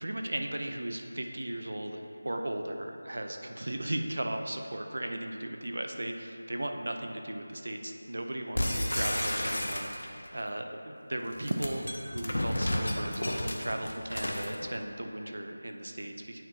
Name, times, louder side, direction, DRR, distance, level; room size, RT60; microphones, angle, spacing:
voice 1, 0.0-16.4, right 1 dB, 55° right, 4 dB, 0.5 m, -36 dB
sound 1, 8.6-10.3 11.3-14.6, left 1 dB, 80° left, 0.7 m, -32 dB
9.0 x 4.6 x 2.7 m, 2.6 s
figure-of-eight pair, 180°, 0 cm